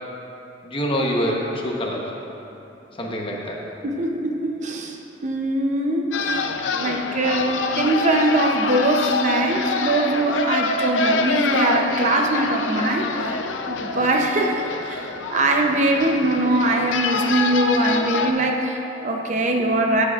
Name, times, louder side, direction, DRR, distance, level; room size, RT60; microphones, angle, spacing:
voice 1, 0.6-2.1 3.0-3.6, equal, 30° left, -1 dB, 0.9 m, -25 dB
voice 2, 3.8-5.0 5.2-6.3 6.8-13.4 13.7-20.0, right 1 dB, 40° right, 2 dB, 0.6 m, -22 dB
sound 1, 6.1-18.3, left 4 dB, 85° left, 0.5 m, -26 dB
13.0 x 8.6 x 2.4 m, 3.0 s
head